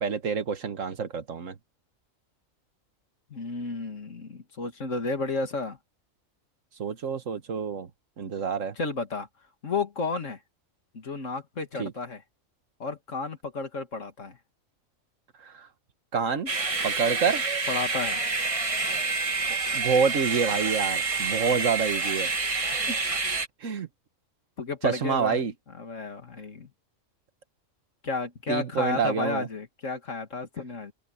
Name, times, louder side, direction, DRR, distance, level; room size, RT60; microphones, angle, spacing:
voice 1, 0.0-1.6 6.8-7.9 8.2-8.8 11.8-11.9 15.4-15.7 16.1-16.5 16.8-17.5 19.7-22.3 22.7-23.0 23.6-23.9 24.8-25.5 28.5-29.5, right 6 dB, 70° right, 1.7 m, -27 dB
voice 2, 3.3-5.8 8.8-9.3 9.6-10.4 10.9-12.2 12.8-14.4 17.7-18.2 24.6-25.4 25.8-26.7 28.0-30.9, left 3 dB, 65° left, 2.5 m, -32 dB
sound 1, 16.5-23.5, right 4 dB, 25° right, 1.5 m, -28 dB
open air
omnidirectional pair, 1.4 m